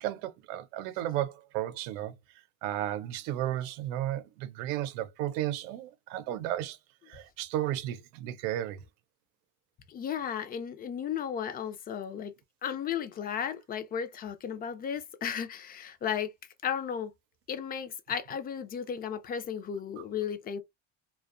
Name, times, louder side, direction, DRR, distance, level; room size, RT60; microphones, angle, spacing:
voice 1, 0.0-2.1 2.6-6.8 7.1-8.8, right 13 dB, 85° right, 0.6 m, -33 dB
voice 2, 9.9-12.3 12.6-16.3 16.6-17.1 17.5-20.6, left 8 dB, 25° left, 0.4 m, -34 dB
2.5 x 2.2 x 2.4 m
cardioid pair, 130°, 37 cm